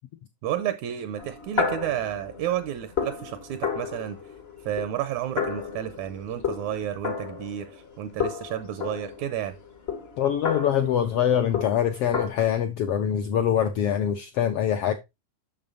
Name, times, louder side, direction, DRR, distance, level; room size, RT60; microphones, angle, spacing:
voice 1, 0.4-4.2 4.6-9.6, right 11 dB, 75° right, 1.9 m, -31 dB
sound 1, 1.2-7.9 8.2-12.3, left 6 dB, 60° left, 0.6 m, -32 dB
voice 2, 10.2-14.9, left 9 dB, 80° left, 1.3 m, -24 dB
8.8 x 6.8 x 2.6 m
omnidirectional pair, 3.6 m